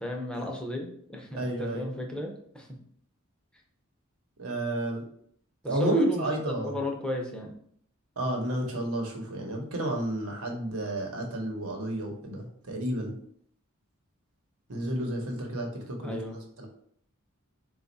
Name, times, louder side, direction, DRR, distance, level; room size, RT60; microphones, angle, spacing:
voice 1, 0.0-2.7 5.6-6.2 6.5-7.5 16.0-16.4, left 1 dB, 5° left, 0 dB, 0.6 m, -34 dB
voice 2, 1.3-1.9 4.4-5.0 5.7-6.8 8.2-13.1 14.7-16.7, right 1 dB, 85° right, 1 dB, 1.0 m, -31 dB
4.3 x 2.3 x 4.0 m, 0.64 s
head